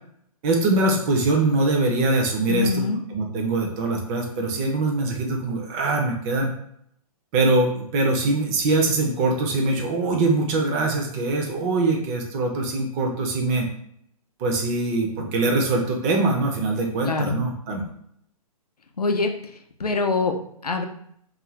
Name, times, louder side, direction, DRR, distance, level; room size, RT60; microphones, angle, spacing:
voice 1, 0.4-6.5 7.3-13.7 14.4-17.8, right 2 dB, 25° right, 1 dB, 0.5 m, -23 dB
voice 2, 2.5-3.0 17.1-17.4 19.0-19.3 19.8-20.3 20.6-20.8, left 3 dB, 85° left, 4 dB, 0.5 m, -23 dB
2.5 x 2.4 x 3.1 m, 0.68 s
figure-of-eight pair, 125°, 19 cm